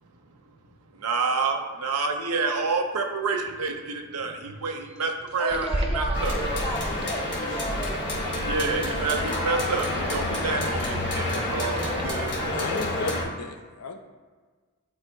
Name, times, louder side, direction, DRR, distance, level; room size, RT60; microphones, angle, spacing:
voice 1, 0.9-6.3 8.4-12.3, right 4 dB, 80° right, 3 dB, 0.7 m, -28 dB
voice 2, 5.4-8.3, equal, 20° left, -8 dB, 1.8 m, -34 dB
sound 1, 5.5-12.1, right 1 dB, 25° right, 0.4 m, -34 dB
sound 2, 6.1-13.2, left 1 dB, 50° left, 1.4 m, -29 dB
voice 3, 12.5-14.0, left 3 dB, 80° left, 4 dB, 0.6 m, -34 dB
9.9 x 4.2 x 2.3 m, 1.4 s
head